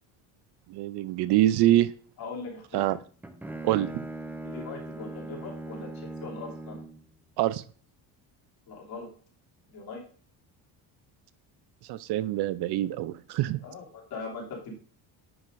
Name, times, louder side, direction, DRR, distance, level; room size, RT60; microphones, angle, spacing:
voice 1, 0.7-1.9 2.7-3.0 3.6-4.0 7.4-7.6 11.9-13.6, right 14 dB, 65° right, 16 dB, 0.5 m, -25 dB
voice 2, 2.2-2.9 4.4-6.8 8.7-9.1 9.7-10.0 13.6-14.7, left 4 dB, 55° left, -2 dB, 2.9 m, -40 dB
Bowed string instrument, 2.9-7.1, right 2 dB, 5° right, 0.5 m, -40 dB
10.0 x 6.3 x 2.6 m, 0.43 s
cardioid pair, 140°, 43 cm